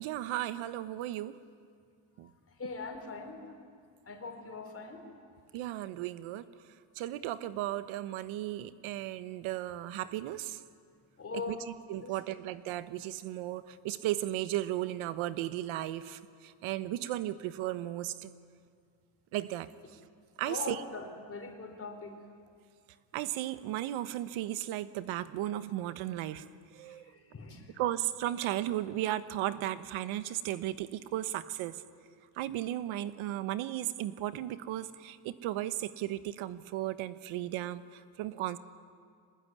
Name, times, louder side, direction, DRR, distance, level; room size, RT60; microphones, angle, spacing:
voice 1, 0.0-1.4 2.2-2.3 5.5-6.4 6.9-10.6 11.5-11.6 11.9-18.3 19.3-20.0 20.4-20.8 23.1-27.1 27.8-31.8 32.3-38.6, right 14 dB, 70° right, 13 dB, 1.3 m, -35 dB
voice 2, 2.5-3.6 4.1-5.3 11.2-11.6 12.0-12.1 20.5-22.2 26.9-27.7, left 4 dB, 25° left, 4 dB, 4.7 m, -41 dB
24.5 x 19.5 x 9.6 m, 2.2 s
cardioid pair, 105°, 50 cm